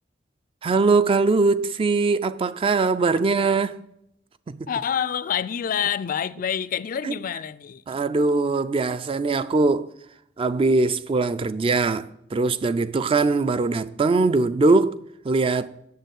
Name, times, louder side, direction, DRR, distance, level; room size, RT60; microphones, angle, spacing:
voice 1, 0.6-3.8 4.5-4.7 7.0-7.1 7.9-9.9 10.4-15.0 15.2-15.7, right 3 dB, 30° right, 0.3 m, -21 dB
voice 2, 4.7-7.8, left 8 dB, 50° left, 0.4 m, -27 dB
7.0 x 6.7 x 7.9 m
head